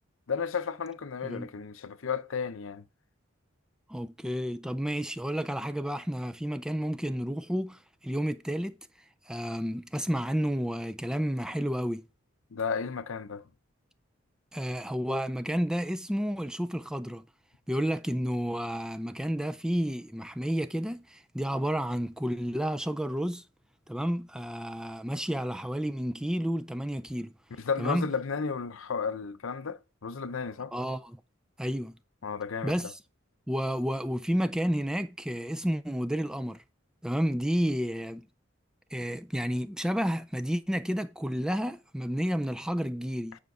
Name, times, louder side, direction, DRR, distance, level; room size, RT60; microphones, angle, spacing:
voice 1, 0.3-2.8 12.5-13.4 27.6-30.7 32.2-32.9, left 5 dB, 75° left, 0.6 m, -33 dB
voice 2, 3.9-8.8 9.3-12.0 14.5-17.2 17.7-23.4 23.9-27.3 27.8-28.1 30.7-31.2 31.6-31.9 32.6-32.9 33.5-36.6 37.0-38.2 38.9-43.4, equal, 5° right, 0.4 m, -31 dB
9.4 x 5.1 x 4.8 m
head